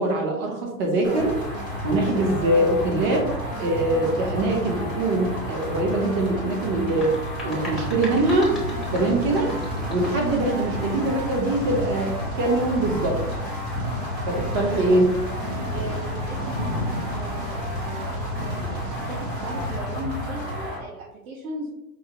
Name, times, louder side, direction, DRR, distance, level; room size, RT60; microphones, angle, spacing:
voice 1, 0.0-1.4 1.8-3.3 3.6-7.2 7.4-8.5 8.9-9.5 9.9-13.2 14.3-15.0, right 2 dB, 40° right, 0 dB, 1.1 m, -23 dB
sound 1, 1.0-20.8, equal, 15° right, 0.3 m, -31 dB
sound 2, 6.7-10.4, left 1 dB, ahead, 0.7 m, -38 dB
sound 3, 8.1-19.8, equal, 75° right, 1.4 m, -34 dB
voice 2, 15.7-21.7, right 1 dB, 60° right, -8 dB, 1.3 m, -37 dB
5.5 x 2.2 x 2.9 m, 0.88 s
supercardioid pair, 145°, 45 cm